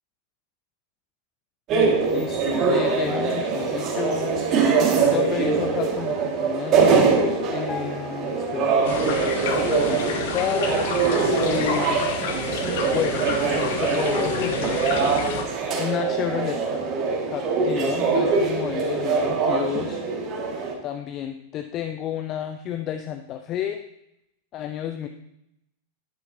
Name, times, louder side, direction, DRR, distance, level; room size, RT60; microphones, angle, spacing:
sound 1, 1.7-20.7, right 4 dB, 35° right, 1.8 m, -23 dB
voice 1, 2.1-4.3 5.1-10.7 11.4-12.3 12.9-13.3 13.5-14.9 15.8-16.8 17.3-20.0 20.8-23.8 24.5-25.1, left 10 dB, 35° left, 7 dB, 0.5 m, -31 dB
sound 2, 7.7-9.3 9.6-9.8, left 3 dB, 15° left, 1.6 m, -41 dB
sound 3, 8.8-15.4, left 5 dB, 55° left, 1.3 m, -30 dB
10.5 x 9.6 x 2.7 m, 0.83 s
figure-of-eight pair, 90°, 0 cm